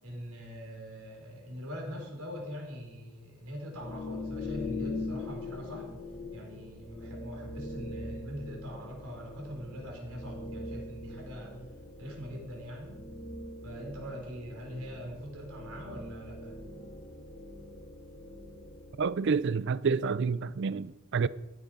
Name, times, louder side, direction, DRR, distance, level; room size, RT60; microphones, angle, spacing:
voice 1, 0.0-5.9 6.3-11.6 12.0-13.0 13.6-16.5, equal, 85° right, 5.1 m, -42 dB
sound 1, 3.7-19.5, left 2 dB, 40° left, 2.0 m, -42 dB
voice 2, 19.0-21.3, right 5 dB, 55° right, 0.4 m, -28 dB
15.0 x 10.0 x 5.2 m
head